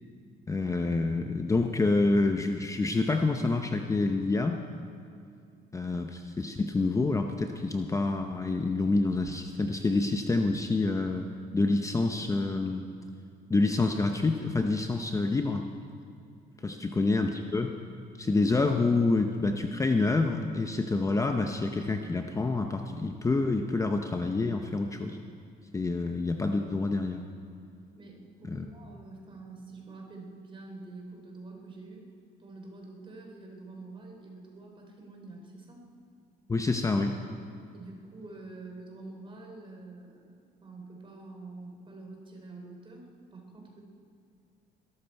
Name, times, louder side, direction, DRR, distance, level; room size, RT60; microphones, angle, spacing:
voice 1, 0.5-4.6 5.7-11.3 11.5-12.8 13.5-15.7 16.6-17.8 18.2-25.2 25.7-27.2 28.5-28.7 36.5-37.2, left 3 dB, 20° left, 5 dB, 0.7 m, -27 dB
voice 2, 28.0-32.1 32.4-35.8 37.7-40.4 40.6-43.8, right 3 dB, 30° right, 1 dB, 3.3 m, -47 dB
20.5 x 12.5 x 4.6 m, 2.4 s
cardioid pair, 110°, 17 cm